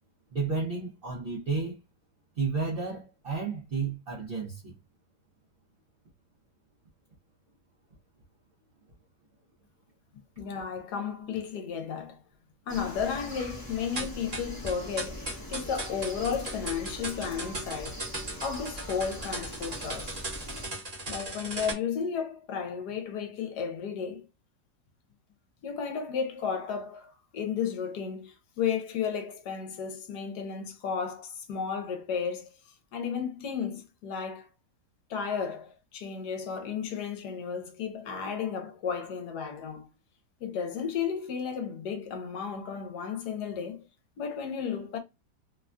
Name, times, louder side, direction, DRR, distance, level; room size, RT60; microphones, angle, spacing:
voice 1, 0.3-1.8 2.4-4.8, right 4 dB, 60° right, 0.6 m, -32 dB
voice 2, 10.4-12.2 12.7-18.0 18.4-20.2 21.1-24.2 25.6-32.5 32.9-34.5 35.1-39.9 40.4-43.9 44.2-45.0, left 7 dB, 75° left, 1.2 m, -33 dB
sound 1, 12.7-20.7, equal, 20° left, 0.7 m, -42 dB
sound 2, 14.0-21.7, right 2 dB, 35° right, 1.1 m, -37 dB
3.1 x 2.2 x 2.4 m
omnidirectional pair, 1.8 m